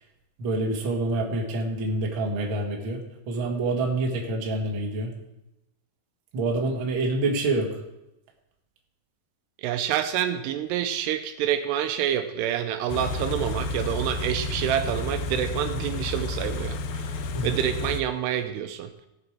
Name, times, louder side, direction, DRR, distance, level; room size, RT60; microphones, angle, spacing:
voice 1, 0.4-3.0 3.3-5.1 6.3-7.8 17.3-17.5, right 2 dB, 50° right, 1 dB, 1.4 m, -27 dB
voice 2, 9.6-17.1 17.4-18.9, right 10 dB, 80° right, 9 dB, 2.6 m, -27 dB
Car / Idling, 12.9-18.0, left 3 dB, 75° left, 2.3 m, -31 dB
17.5 x 7.1 x 4.7 m, 0.92 s
omnidirectional pair, 5.0 m